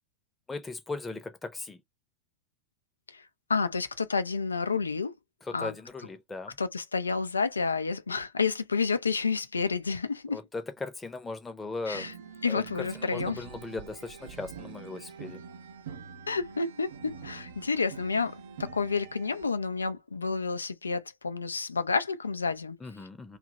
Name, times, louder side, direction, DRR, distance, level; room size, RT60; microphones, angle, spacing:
voice 1, 0.5-1.8 5.4-6.6 10.3-12.1 12.5-15.4 22.8-23.4, left 3 dB, 10° left, 0.8 m, -38 dB
voice 2, 3.1-5.1 5.5-5.7 6.6-10.4 11.9-12.1 12.4-13.4 16.3-22.8, left 4 dB, 75° left, 0.5 m, -30 dB
sound 1, 11.9-19.5, right 6 dB, 60° right, 0.7 m, -45 dB
2.9 x 2.5 x 3.9 m
figure-of-eight pair, 90°, 0 cm